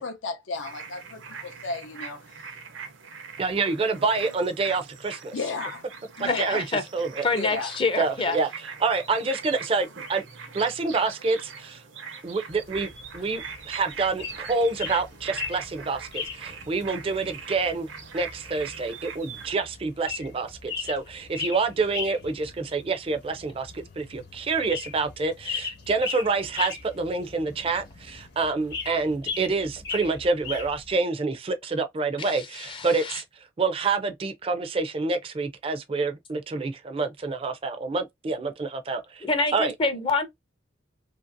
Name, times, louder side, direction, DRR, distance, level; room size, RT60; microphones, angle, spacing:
voice 1, 0.0-2.5 5.3-5.8 6.2-6.6 7.3-7.7, left 4 dB, 80° left, 0.5 m, -34 dB
sound 1, 0.5-19.5, right 6 dB, 85° right, 0.7 m, -41 dB
voice 2, 3.4-5.3 6.2-6.6 6.9-7.3 8.0-8.5 8.8-10.2 10.5-11.8 12.2-33.2 33.6-39.2 39.5-39.7, right 4 dB, 30° right, 0.4 m, -27 dB
voice 3, 6.3-6.8 7.2-8.4 32.2-33.2 39.2-40.3, left 3 dB, 25° left, 0.5 m, -27 dB
sound 2, 12.5-30.9, left 5 dB, 55° left, 1.0 m, -39 dB
2.8 x 2.5 x 2.5 m
head